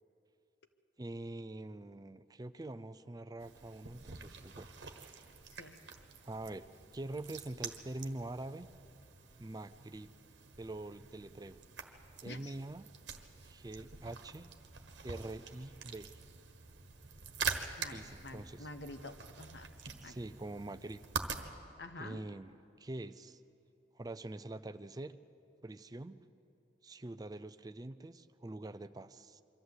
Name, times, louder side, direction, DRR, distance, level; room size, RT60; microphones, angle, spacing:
voice 1, 1.0-4.7 6.2-6.7 6.9-8.7 9.4-10.1 10.6-11.6 12.2-12.9 13.4-14.5 15.0-16.1 17.9-18.7 20.0-21.0 22.0-23.4 23.9-25.2 25.6-26.2 26.8-29.4, right 2 dB, 20° right, 12 dB, 0.4 m, -44 dB
sound 1, 3.4-21.4, right 5 dB, 65° right, 1.3 m, -46 dB
voice 2, 17.8-19.7 20.0-20.1 21.8-22.2, left 2 dB, 60° left, 8 dB, 1.0 m, -48 dB
23.5 x 14.0 x 8.0 m, 2.9 s
head